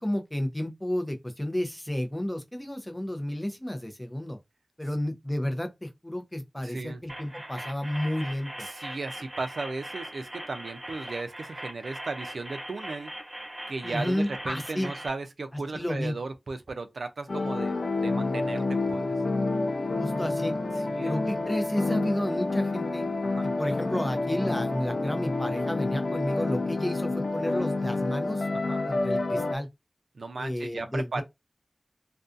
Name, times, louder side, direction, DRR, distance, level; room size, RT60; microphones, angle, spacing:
voice 1, 0.0-4.4 4.8-8.7 13.8-14.9 15.7-16.2 20.0-20.5 21.0-23.1 23.4-28.5 28.8-29.7 30.4-31.2, left 1 dB, 15° left, 0.5 m, -31 dB
voice 2, 6.6-7.0 8.6-13.1 13.7-19.2 20.8-21.2 23.3-23.5 28.5-28.8 30.1-31.2, right 3 dB, 85° right, 0.4 m, -36 dB
sound 1, 7.1-15.1, right 1 dB, 20° right, 1.0 m, -40 dB
sound 2, 17.3-29.6, left 2 dB, 65° left, 0.4 m, -28 dB
2.5 x 2.3 x 2.4 m
wide cardioid pair, 60°, 0 cm